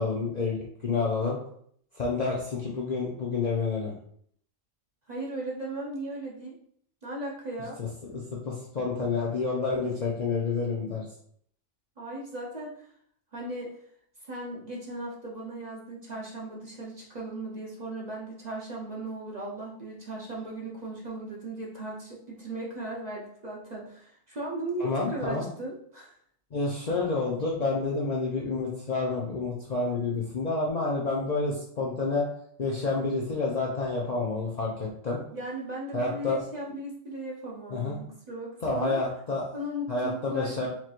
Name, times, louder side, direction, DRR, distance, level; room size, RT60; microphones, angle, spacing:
voice 1, 0.0-1.4 1.9-3.9 7.8-11.1 24.8-25.4 26.5-32.3 32.6-35.2 35.9-36.4 37.7-38.0 38.6-39.5 39.9-40.7, left 3 dB, 45° left, -4 dB, 0.5 m, -29 dB
voice 2, 5.1-6.6 7.0-7.8 12.0-12.8 13.3-13.8 14.2-26.1 35.3-39.0 39.5-40.7, right 1 dB, 40° right, -4 dB, 0.7 m, -37 dB
4.6 x 3.0 x 2.4 m, 0.64 s
omnidirectional pair, 1.3 m